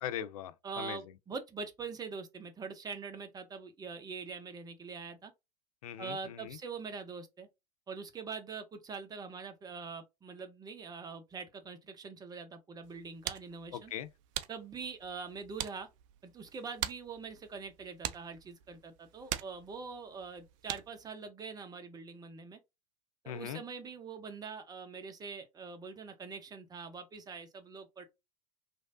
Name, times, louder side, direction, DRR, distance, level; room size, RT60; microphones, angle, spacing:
voice 1, 0.0-1.0 5.8-6.6 13.7-14.1 23.3-23.6, left 10 dB, 60° left, 0.4 m, -40 dB
voice 2, 0.6-5.3 6.0-7.5 7.9-13.9 14.5-15.9 16.2-22.6 23.2-28.1, right 5 dB, 20° right, 0.7 m, -44 dB
sound 1, 12.8-21.1, right 12 dB, 50° right, 0.4 m, -43 dB
3.1 x 2.6 x 2.5 m
figure-of-eight pair, 85°, 21 cm